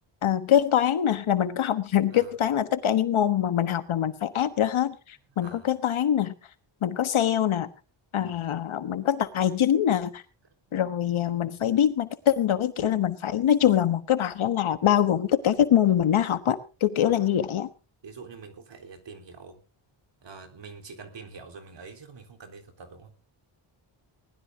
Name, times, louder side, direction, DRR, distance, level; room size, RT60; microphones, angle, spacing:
voice 1, 0.2-4.9 5.4-6.3 6.8-7.7 8.1-10.2 10.7-17.7, left 10 dB, 75° left, 11 dB, 1.4 m, -24 dB
voice 2, 5.4-5.7 8.2-8.4 10.7-10.8 17.0-17.3 18.0-19.6 20.2-23.2, right 4 dB, 60° right, 5 dB, 3.8 m, -46 dB
20.0 x 12.5 x 3.7 m, 0.35 s
wide cardioid pair, 120°, 49 cm